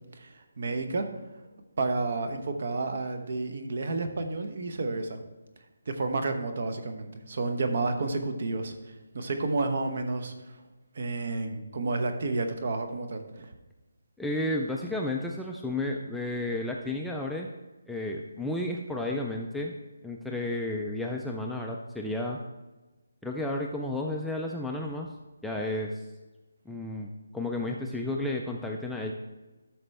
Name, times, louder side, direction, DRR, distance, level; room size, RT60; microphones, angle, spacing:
voice 1, 0.1-1.1 1.8-5.2 5.9-10.6 10.9-13.5, right 3 dB, 40° right, 6 dB, 1.0 m, -31 dB
voice 2, 14.2-17.5 17.9-19.7 20.0-22.4 23.2-25.1 25.4-26.0 26.7-29.1, left 1 dB, ahead, -1 dB, 0.3 m, -32 dB
12.5 x 6.0 x 3.3 m, 1.2 s
hypercardioid pair, 175°, 0 cm